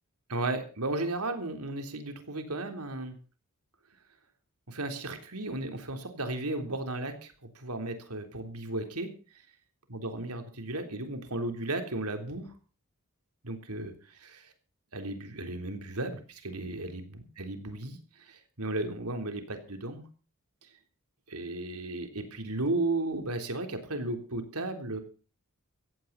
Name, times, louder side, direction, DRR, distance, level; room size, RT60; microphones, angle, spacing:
voice 1, 0.3-3.2 4.7-9.1 9.9-12.5 13.4-14.5 14.9-20.0 21.3-25.0, right 2 dB, 80° right, 6 dB, 3.7 m, -35 dB
16.5 x 16.0 x 4.2 m, 0.37 s
head